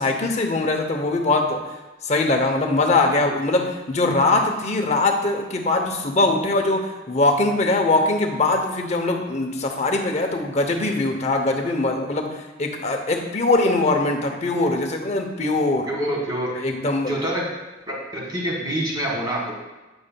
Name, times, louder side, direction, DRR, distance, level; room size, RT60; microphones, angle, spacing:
voice 1, 0.0-1.6 2.0-12.3 12.6-15.9 16.5-17.1, left 2 dB, 35° left, 3 dB, 0.7 m, -21 dB
voice 2, 15.9-16.5 17.1-17.4 17.9-19.5, right 1 dB, 20° right, -3 dB, 1.6 m, -26 dB
8.7 x 6.8 x 2.2 m, 1.1 s
head